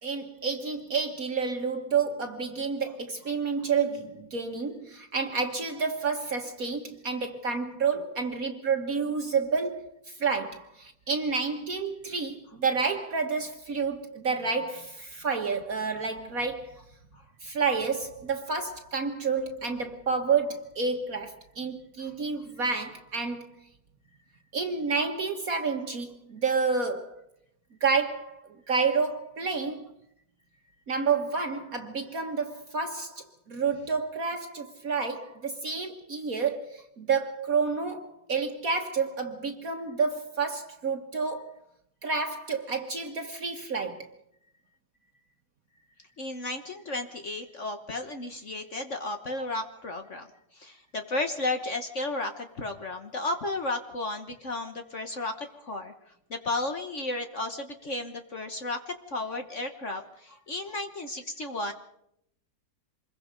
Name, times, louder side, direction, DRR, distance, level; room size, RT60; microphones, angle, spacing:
voice 1, 0.0-9.9 10.2-16.8 17.4-23.6 24.5-27.1 27.8-29.9 30.9-41.5 42.0-44.1, right 5 dB, 55° right, 1.8 m, -29 dB
voice 2, 46.2-50.3 50.5-55.9 56.3-61.7, left 2 dB, 45° left, 1.5 m, -33 dB
26.0 x 22.0 x 5.2 m
omnidirectional pair, 1.9 m